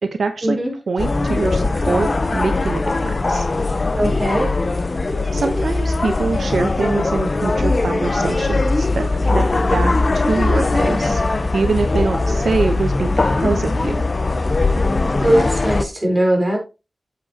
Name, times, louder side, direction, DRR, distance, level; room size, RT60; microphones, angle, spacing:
voice 1, 0.0-0.6 0.9-3.4 5.3-11.2 11.5-14.0, right 4 dB, 85° right, 7 dB, 0.9 m, -24 dB
sound 1, 1.0-15.8, left 3 dB, 40° left, 0.8 m, -20 dB
voice 2, 4.0-4.5 15.2-16.6, right 1 dB, 20° right, 0 dB, 4.0 m, -19 dB
8.8 x 7.8 x 2.9 m, 0.29 s
wide cardioid pair, 95°, 0 cm